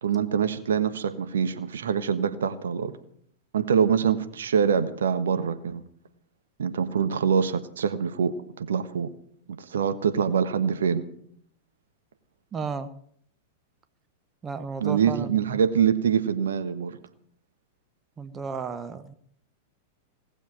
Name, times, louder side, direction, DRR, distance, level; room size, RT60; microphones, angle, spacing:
voice 1, 0.0-2.9 3.5-5.8 6.6-9.1 9.7-11.0 14.8-17.0, right 7 dB, 70° right, 9 dB, 1.3 m, -24 dB
voice 2, 12.5-12.9 14.4-15.6 18.2-19.1, right 5 dB, 20° right, 11 dB, 1.1 m, -34 dB
18.5 x 7.2 x 8.9 m, 0.65 s
figure-of-eight pair, 95°, 0 cm